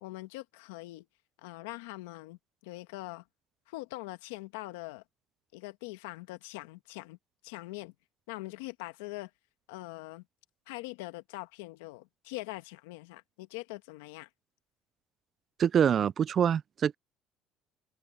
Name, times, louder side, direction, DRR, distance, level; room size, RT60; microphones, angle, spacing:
voice 1, 0.0-1.1 1.4-3.2 3.7-5.0 5.5-7.2 7.4-7.9 8.3-9.3 9.7-10.2 10.7-14.3, left 20 dB, 85° left, 1.6 m, -42 dB
voice 2, 15.6-16.9, right 8 dB, 45° right, 0.6 m, -25 dB
supercardioid pair, 80°, 0 cm